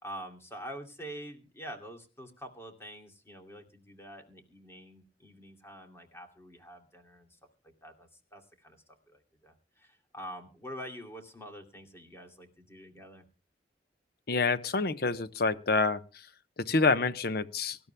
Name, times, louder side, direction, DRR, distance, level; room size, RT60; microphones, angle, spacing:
voice 1, 0.0-7.4 7.6-8.8 9.1-13.3, equal, 15° left, 2.6 m, -46 dB
voice 2, 14.3-16.3 16.6-17.8, left 3 dB, 60° left, 1.0 m, -27 dB
24.0 x 12.5 x 2.2 m
head